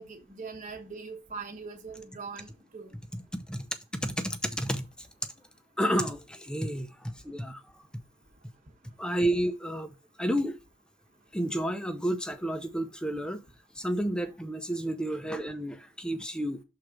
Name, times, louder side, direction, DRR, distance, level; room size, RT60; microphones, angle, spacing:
voice 1, 0.0-2.9, right 4 dB, 35° right, 1.1 m, -41 dB
voice 2, 3.1-3.7 3.9-5.1 5.8-7.8 9.0-10.6 11.3-13.4 13.8-16.6, right 1 dB, 5° left, 0.6 m, -31 dB
6.4 x 3.8 x 5.8 m
head